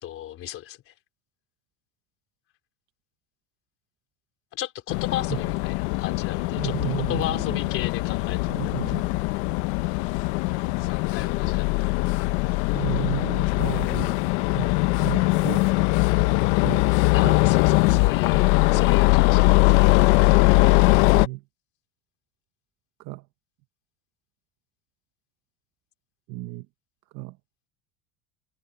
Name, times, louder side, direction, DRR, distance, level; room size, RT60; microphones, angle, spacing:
voice 1, 0.0-0.9 4.5-6.7 7.1-8.4 8.7-8.8 10.8-11.7 17.1-20.4, left 13 dB, 40° left, 4.1 m, -34 dB
sound 1, 4.9-21.3, left 22 dB, 90° left, 0.9 m, -21 dB
voice 2, 6.6-7.6 8.5-9.1 12.7-14.1 14.5-14.7 15.0-15.7 16.6-16.8 17.2-17.4 21.1-21.4 23.0-23.2 26.3-26.7 27.1-27.4, right 21 dB, 55° right, 1.0 m, -33 dB
cardioid pair, 170°, 33 cm